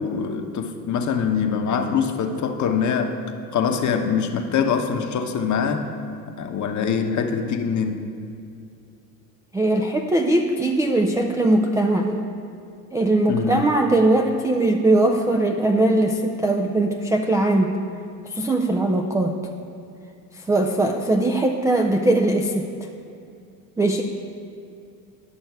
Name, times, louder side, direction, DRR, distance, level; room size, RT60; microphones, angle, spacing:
voice 1, 0.0-3.2 3.5-5.9 6.4-8.0 13.3-13.6, left 6 dB, 35° left, 5 dB, 1.0 m, -23 dB
voice 2, 9.5-12.2 12.9-17.7 18.3-19.3 20.4-22.7 23.8-24.0, right 2 dB, 5° right, 2 dB, 0.3 m, -20 dB
11.5 x 6.2 x 4.7 m, 2.5 s
hypercardioid pair, 75°, 48 cm